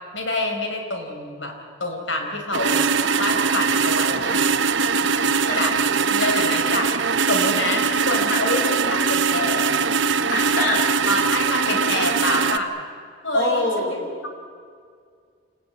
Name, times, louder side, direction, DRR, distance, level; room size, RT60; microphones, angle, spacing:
voice 1, 0.1-1.5 1.8-2.8 3.2-4.4 5.5-5.7 6.1-9.8 11.0-12.7 13.2-14.0, left 1 dB, 80° left, 3 dB, 5.0 m, -27 dB
sound 1, 2.5-12.6, right 5 dB, 75° right, 1.0 m, -21 dB
voice 2, 5.0-6.0 8.3-8.4 10.3-10.8 11.2-11.3 13.3-13.9, left 1 dB, 65° left, 0 dB, 6.8 m, -25 dB
28.0 x 19.5 x 8.6 m, 2.1 s
head